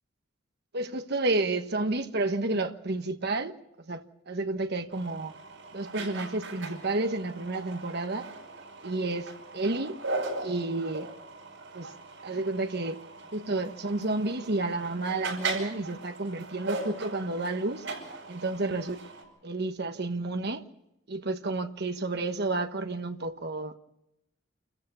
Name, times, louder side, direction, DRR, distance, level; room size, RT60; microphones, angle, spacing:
voice 1, 0.7-3.5 3.9-5.3 5.7-8.3 8.8-10.0 10.4-11.1 11.7-11.9 12.2-13.0 13.3-17.8 18.3-19.0 19.4-20.6 21.1-23.8, right 2 dB, 55° right, 1.3 m, -31 dB
sound 1, 4.9-19.2, right 3 dB, 70° right, 7.7 m, -39 dB
28.0 x 14.5 x 6.9 m
head